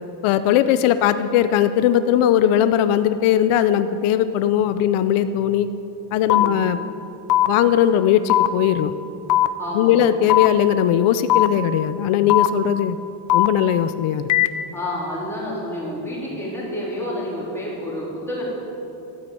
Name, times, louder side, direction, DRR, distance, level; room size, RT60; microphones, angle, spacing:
voice 1, 0.2-5.7 6.1-6.8 7.5-8.9 9.7-13.0 13.3-14.3, left 10 dB, 85° left, 11 dB, 0.7 m, -19 dB
voice 2, 6.2-6.6 9.6-10.0 12.6-12.7 14.7-18.5, left 1 dB, 5° left, -7 dB, 3.8 m, -29 dB
sound 1, 6.3-6.5 7.3-7.5 8.3-8.5 9.3-9.5 10.3-10.5 11.3-11.5 12.3-12.5 13.3-13.5 14.3-14.5, left 14 dB, 40° left, 0.5 m, -16 dB
13.0 x 9.6 x 8.5 m, 2.9 s
cardioid pair, 180°, 48 cm